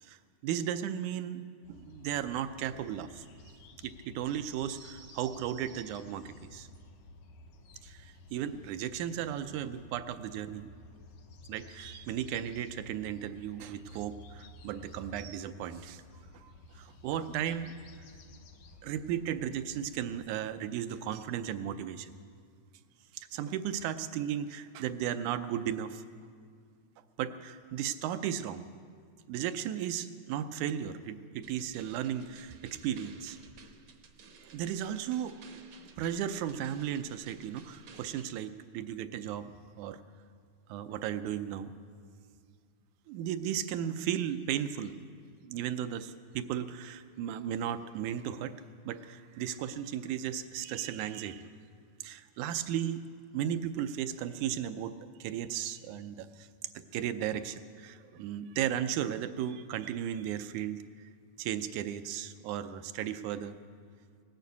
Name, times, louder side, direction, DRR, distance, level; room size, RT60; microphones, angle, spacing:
voice 1, 0.0-1.4 1.7-3.3 3.8-6.7 7.8-10.7 11.5-16.0 16.3-17.7 18.8-22.1 23.1-26.0 27.2-28.7 29.3-33.4 34.5-35.4 36.0-39.5 39.8-40.0 40.7-41.7 43.1-45.1 45.4-48.6 48.9-51.5 52.0-53.0 53.3-56.5 56.8-60.8 61.4-63.6, right 10 dB, 80° right, 10 dB, 2.0 m, -35 dB
sound 1, 1.6-20.2, left 2 dB, 80° left, 2.4 m, -53 dB
sound 2, 31.4-38.2, right 5 dB, 60° right, 1.3 m, -55 dB
19.0 x 9.2 x 8.4 m, 2.1 s
omnidirectional pair, 3.5 m